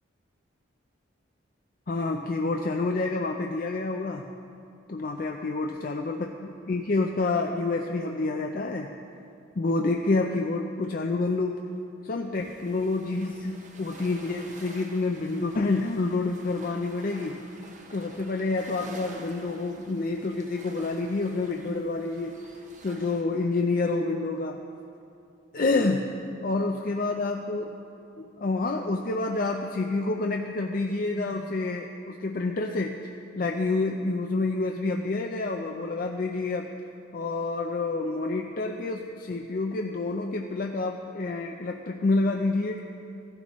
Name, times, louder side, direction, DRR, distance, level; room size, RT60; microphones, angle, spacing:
voice 1, 1.9-4.2 4.9-8.9 9.6-11.6 12.0-17.4 17.9-22.4 22.8-24.6 25.5-26.1 26.4-27.8 28.2-36.7 37.1-42.8, left 3 dB, 45° left, 2 dB, 0.5 m, -28 dB
sound 1, 12.3-23.2, right 2 dB, 40° right, 1.0 m, -49 dB
15.0 x 11.5 x 3.0 m, 2.7 s
head